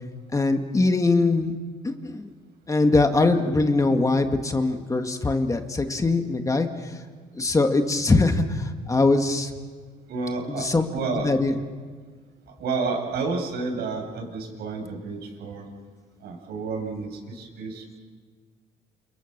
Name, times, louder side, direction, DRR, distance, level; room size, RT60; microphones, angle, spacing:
voice 1, 0.3-1.5 1.8-2.3 2.7-7.0 7.4-9.5 10.5-10.9 11.2-11.5, left 3 dB, 20° left, 6 dB, 1.9 m, -22 dB
voice 2, 10.1-11.3 12.6-15.6 16.2-18.0, right 4 dB, 75° right, 2 dB, 7.8 m, -30 dB
29.0 x 29.0 x 6.8 m, 1.5 s
cardioid pair, 110°, 17 cm